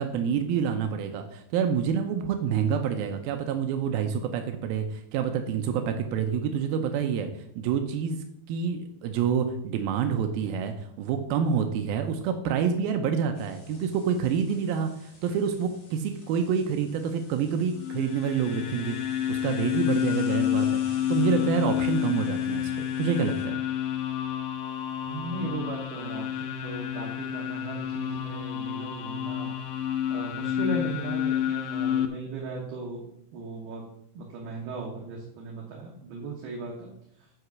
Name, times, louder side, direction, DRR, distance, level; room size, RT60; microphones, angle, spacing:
voice 1, 0.0-7.3 7.6-19.0 19.3-23.6, right 7 dB, 90° right, 6 dB, 2.1 m, -27 dB
sound 1, 13.3-23.4, left 1 dB, 45° left, 1.7 m, -53 dB
sound 2, 17.8-32.1, left 10 dB, 90° left, 3.0 m, -29 dB
voice 2, 25.1-29.5 30.1-33.8 34.1-37.3, right 3 dB, 70° right, -1 dB, 2.9 m, -37 dB
8.0 x 5.8 x 5.9 m, 0.74 s
omnidirectional pair, 5.2 m